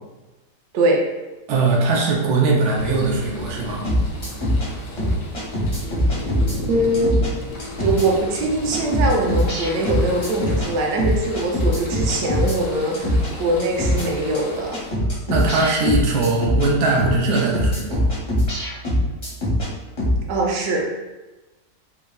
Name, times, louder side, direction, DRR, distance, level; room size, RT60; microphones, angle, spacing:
voice 1, 1.5-3.9 15.3-18.1, right 3 dB, 85° right, -2 dB, 1.1 m, -20 dB
sound 1, 2.7-14.9, left 1 dB, 90° left, 1.1 m, -34 dB
sound 2, 3.8-4.7 5.0-6.6 6.9-7.3 7.6-8.1 8.3-8.4 8.7-10.7 11.0-12.6 12.9-13.3 13.6-14.1 14.3-14.4 14.7-16.7 17.0-19.7 20.0-20.2, left 1 dB, 40° left, 0.5 m, -22 dB
voice 2, 6.7-7.1 7.8-14.8 20.3-20.8, right 2 dB, 65° right, -1 dB, 0.8 m, -22 dB
3.4 x 2.0 x 2.2 m, 1.1 s
omnidirectional pair, 1.6 m